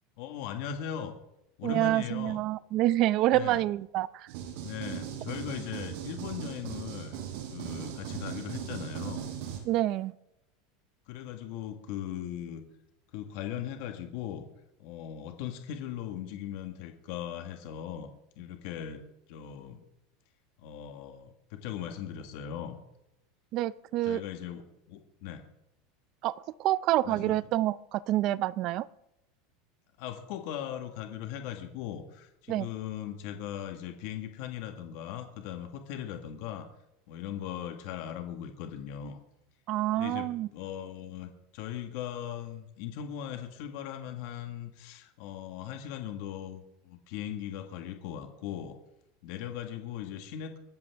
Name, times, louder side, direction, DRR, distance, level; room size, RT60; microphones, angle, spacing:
voice 1, 0.2-1.1 1.6-2.4 3.3-3.6 4.6-7.2 7.5-9.3 11.1-12.6 13.1-14.4 14.8-18.1 18.4-19.8 20.6-22.8 24.0-25.4 27.0-27.4 30.0-36.7 37.1-39.2 39.9-48.8 49.2-50.6, left 10 dB, 55° left, 5 dB, 1.6 m, -39 dB
voice 2, 1.6-4.3 9.6-10.1 23.5-24.2 26.2-26.3 26.6-28.9 32.5-32.7 39.7-40.5, right 15 dB, 35° right, 18 dB, 0.5 m, -27 dB
sound 1, 4.3-9.6, right 9 dB, 60° right, 6.0 m, -38 dB
22.5 x 13.5 x 3.6 m, 0.86 s
supercardioid pair, 170°, 0 cm